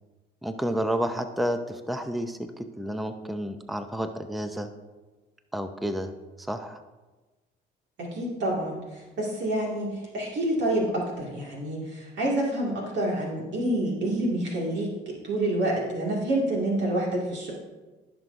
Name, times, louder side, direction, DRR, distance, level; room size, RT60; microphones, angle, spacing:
voice 1, 0.4-4.7 5.5-6.1 6.4-6.8, equal, ahead, 8 dB, 0.6 m, -30 dB
voice 2, 8.0-17.5, right 1 dB, 60° right, -3 dB, 2.1 m, -28 dB
14.5 x 6.1 x 2.6 m, 1.2 s
supercardioid pair, 70°, 21 cm